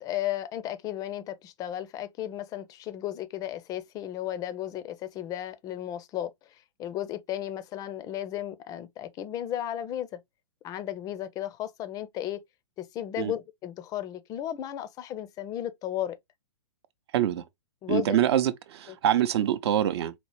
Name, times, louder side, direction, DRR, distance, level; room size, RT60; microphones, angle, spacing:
voice 1, 0.0-10.2 10.6-12.4 12.8-16.2 17.8-18.2 18.9-19.0, left 12 dB, 25° left, 0.4 m, -34 dB
voice 2, 17.1-17.4 17.9-20.1, right 11 dB, 60° right, 0.6 m, -25 dB
4.2 x 2.0 x 3.1 m
hypercardioid pair, 125°, 16 cm